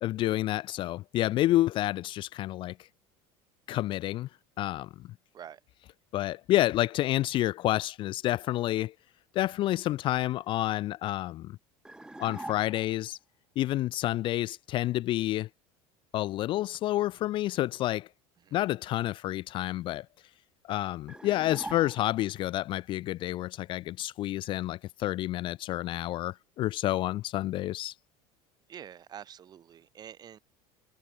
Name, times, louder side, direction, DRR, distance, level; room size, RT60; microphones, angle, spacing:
voice 1, 0.0-2.8 3.7-4.3 4.6-4.9 6.1-8.9 9.3-11.6 12.2-13.2 13.6-15.5 16.1-18.1 18.5-20.1 20.7-27.9, left 15 dB, 40° left, 0.4 m, -29 dB
sound 1, 11.8-13.0 21.1-22.4, right 2 dB, 5° right, 3.7 m, -43 dB
voice 2, 28.7-30.4, right 9 dB, 30° right, 3.4 m, -46 dB
cardioid pair, 145°, 13 cm